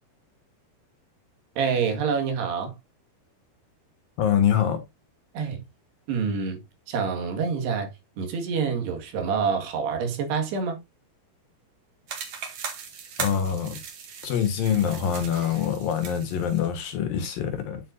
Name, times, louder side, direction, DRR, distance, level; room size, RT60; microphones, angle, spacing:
voice 1, 1.6-2.7 5.4-5.6 6.1-6.6 6.9-7.9 8.2-10.8, right 6 dB, 75° right, 4.0 m, -27 dB
voice 2, 4.2-4.8 13.2-13.8 14.2-17.8, left 8 dB, 65° left, 2.9 m, -25 dB
sound 1, 12.1-16.7, right 6 dB, 55° right, 2.5 m, -38 dB
10.0 x 7.5 x 2.6 m
omnidirectional pair, 4.8 m